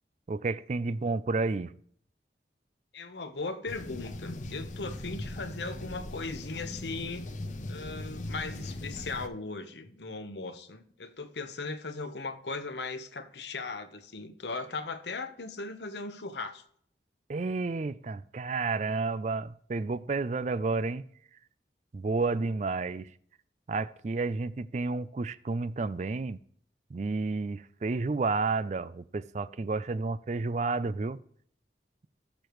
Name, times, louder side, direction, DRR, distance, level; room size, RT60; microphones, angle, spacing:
voice 1, 0.3-1.7 17.3-21.0 21.9-23.1 23.7-26.4 26.9-31.2, right 3 dB, 40° right, 0.4 m, -31 dB
voice 2, 2.9-7.3 7.7-16.6, left 3 dB, 80° left, 1.0 m, -38 dB
sound 1, 3.7-9.3, left 1 dB, 45° left, 0.7 m, -39 dB
17.0 x 6.8 x 3.1 m
head